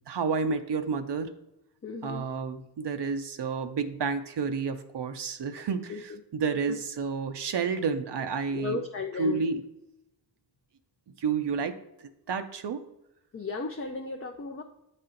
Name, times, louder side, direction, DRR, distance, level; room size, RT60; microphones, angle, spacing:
voice 1, 0.1-1.3 2.0-8.8 9.2-9.6 11.2-12.8, right 5 dB, 75° right, 8 dB, 0.6 m, -30 dB
voice 2, 1.8-2.2 5.9-6.2 6.7-6.8 8.5-9.4 13.3-14.6, left 3 dB, 35° left, 4 dB, 0.5 m, -35 dB
8.5 x 4.3 x 3.8 m, 0.88 s
wide cardioid pair, 80°, 41 cm